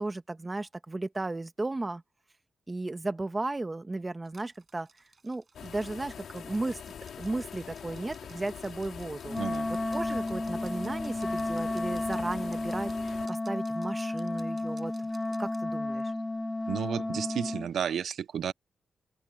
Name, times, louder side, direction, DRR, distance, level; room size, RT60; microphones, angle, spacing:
voice 1, 0.0-2.0 2.7-4.9 5.2-6.8 7.2-9.4 9.7-14.9 15.4-16.1, right 2 dB, 20° right, 1.2 m, -35 dB
sound 1, 4.2-15.6, right 4 dB, 35° right, 7.0 m, -60 dB
sound 2, 5.5-13.3, left 8 dB, 75° left, 3.4 m, -44 dB
Wind instrument woodwind instrument, 9.3-17.7, left 2 dB, 10° left, 0.6 m, -32 dB
voice 2, 9.4-9.7 16.7-18.5, right 8 dB, 80° right, 0.5 m, -32 dB
wide cardioid pair, 155°, 0 cm